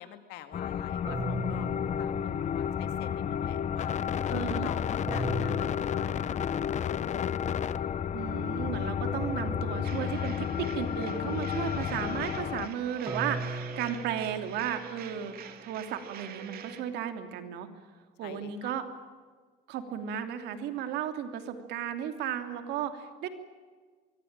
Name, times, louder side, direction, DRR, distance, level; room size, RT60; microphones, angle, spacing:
voice 1, 0.0-1.7 2.0-3.9 4.3-6.8 7.3-7.4 18.2-18.8, left 12 dB, 90° left, 8 dB, 2.3 m, -46 dB
sound 1, 0.5-12.7, left 8 dB, 45° left, 0.9 m, -31 dB
sound 2, 1.1-3.1 5.1-6.9 9.1-10.9 13.1-15.3, right 2 dB, 20° right, 1.8 m, -39 dB
voice 2, 4.3-4.7 8.1-17.7 18.2-18.8 19.7-23.3, right 9 dB, 85° right, 7 dB, 3.0 m, -34 dB
sound 3, 9.8-16.8, right 9 dB, 65° right, 3.0 m, -45 dB
24.5 x 23.5 x 8.9 m, 1.5 s
cardioid pair, 110°, 17 cm